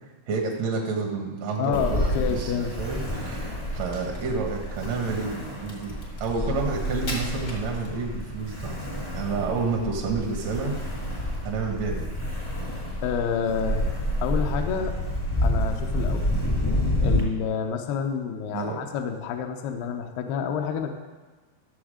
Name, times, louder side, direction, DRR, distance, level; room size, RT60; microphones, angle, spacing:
voice 1, 0.3-5.9 6.2-8.9 9.1-10.7 11.0-11.1 11.4-12.1 18.5-18.8, right 4 dB, 75° right, 0 dB, 1.6 m, -29 dB
voice 2, 1.6-2.7 13.0-13.9 14.2-15.0 15.4-16.2 17.0-20.9, left 7 dB, 80° left, 4 dB, 2.3 m, -28 dB
Ocean, 1.7-17.2, left 1 dB, 20° left, 0.7 m, -29 dB
Crack, 3.8-8.3, left 1 dB, 55° left, 1.0 m, -41 dB
13.5 x 7.0 x 5.0 m, 1.3 s
omnidirectional pair, 5.4 m